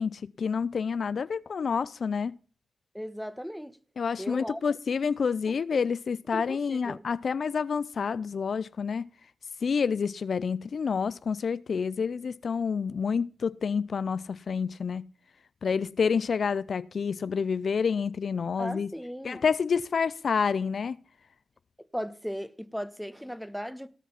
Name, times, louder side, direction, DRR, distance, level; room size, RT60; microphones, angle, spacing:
voice 1, 0.0-2.4 4.0-9.1 9.6-15.0 15.6-18.9 19.2-21.0, left 6 dB, 65° left, 0.5 m, -28 dB
voice 2, 2.9-3.8 4.2-4.6 6.3-7.0 18.6-19.4 21.9-24.0, equal, ahead, 1.3 m, -37 dB
17.5 x 5.9 x 5.8 m
supercardioid pair, 40°, 0 cm